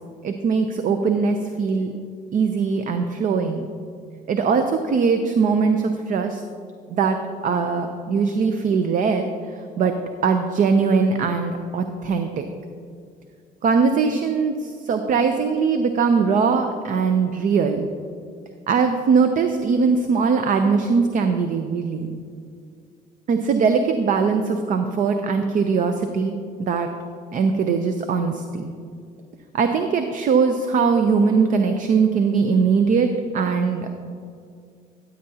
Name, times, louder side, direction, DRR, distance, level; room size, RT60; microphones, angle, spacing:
voice 1, 0.2-1.9 2.3-3.7 4.3-6.4 6.9-7.2 7.4-9.3 9.8-9.9 10.2-12.4 13.6-17.9 18.7-22.2 23.3-26.3 26.6-26.9 27.3-28.7 29.5-34.1, right 5 dB, 50° right, 7 dB, 0.6 m, -21 dB
13.5 x 8.8 x 2.8 m, 2.3 s
cardioid pair, 110°, 17 cm